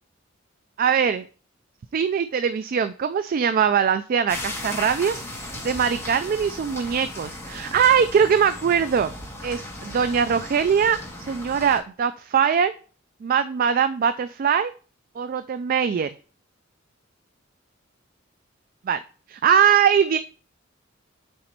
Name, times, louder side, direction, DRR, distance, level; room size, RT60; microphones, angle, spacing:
voice 1, 0.8-1.3 1.9-5.2 5.6-9.1 9.4-12.7 13.2-14.7 15.2-16.1 18.8-19.0 19.3-20.2, right 7 dB, 45° right, 12 dB, 0.3 m, -21 dB
sound 1, 4.3-11.8, left 1 dB, 10° left, 2.5 m, -36 dB
7.9 x 4.3 x 4.4 m, 0.39 s
head